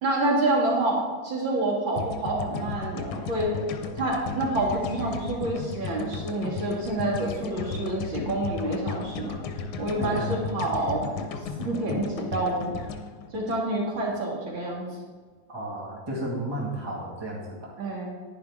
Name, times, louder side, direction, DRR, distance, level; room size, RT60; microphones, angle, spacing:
voice 1, 0.0-3.5 3.9-9.3 9.8-11.0 11.6-12.9 13.3-15.0 17.8-18.1, right 2 dB, 65° right, -3 dB, 2.8 m, -28 dB
sound 1, 2.0-14.2, left 5 dB, 90° left, 1.7 m, -35 dB
voice 2, 10.0-10.3 15.5-17.7, right 1 dB, 10° right, -4 dB, 1.9 m, -33 dB
10.5 x 10.0 x 3.6 m, 1.5 s
omnidirectional pair, 2.3 m